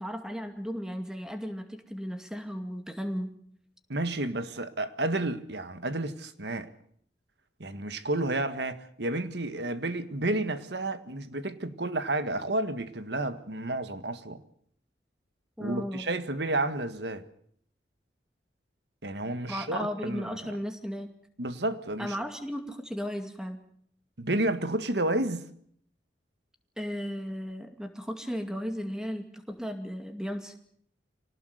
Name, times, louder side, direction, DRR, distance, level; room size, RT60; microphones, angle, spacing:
voice 1, 0.0-3.3 15.6-16.1 19.5-21.1 22.0-23.6 26.8-30.5, equal, 5° right, 2.3 m, -35 dB
voice 2, 3.9-6.7 7.6-14.4 15.6-17.2 19.0-20.5 21.4-22.2 24.2-25.5, right 2 dB, 75° right, 1.7 m, -31 dB
25.0 x 18.5 x 8.0 m
head